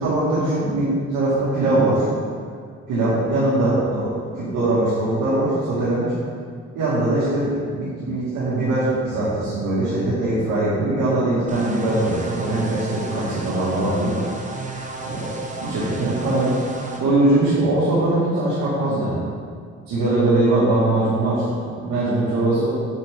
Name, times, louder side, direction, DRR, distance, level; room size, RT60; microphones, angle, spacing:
voice 1, 0.0-2.1 2.9-6.1 6.7-14.2 15.0-15.3 15.6-16.6 17.0-19.2 19.9-22.7, right 2 dB, 90° right, -10 dB, 2.0 m, -21 dB
sound 1, 11.5-17.0, right 3 dB, 25° right, 1.0 m, -33 dB
7.2 x 6.3 x 3.7 m, 2.1 s
cardioid pair, 90°, 30 cm